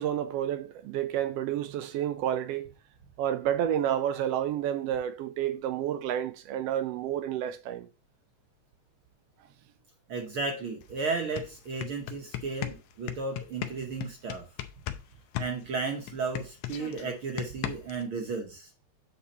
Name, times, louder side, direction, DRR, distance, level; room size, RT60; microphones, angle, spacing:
voice 1, 0.0-2.7 3.2-7.9, right 10 dB, 85° right, 1.4 m, -30 dB
voice 2, 10.1-14.4 15.4-18.7, right 4 dB, 60° right, 1.5 m, -34 dB
sound 1, 10.8-10.9 11.2-15.0 15.3-18.0, left 13 dB, 85° left, 2.1 m, -36 dB
8.6 x 4.2 x 4.1 m
omnidirectional pair, 3.3 m